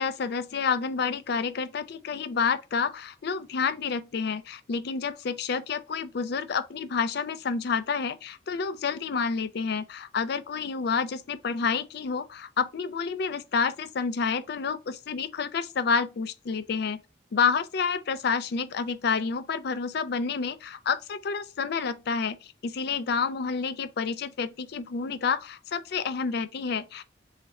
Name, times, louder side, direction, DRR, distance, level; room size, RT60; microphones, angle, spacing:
voice 1, 0.0-17.0 17.3-27.0, left 5 dB, 60° left, 0.4 m, -29 dB
4.2 x 2.4 x 4.0 m
head